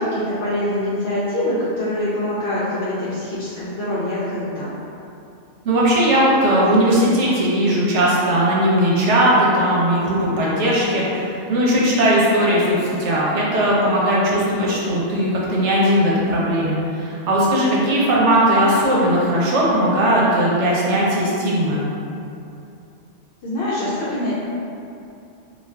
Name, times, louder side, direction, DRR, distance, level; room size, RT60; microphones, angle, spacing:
voice 1, 0.0-4.7 23.4-24.3, left 1 dB, 65° left, -9 dB, 0.7 m, -24 dB
voice 2, 5.6-21.8, right 1 dB, 80° right, -5 dB, 1.0 m, -18 dB
2.4 x 2.3 x 3.3 m, 2.6 s
omnidirectional pair, 1.2 m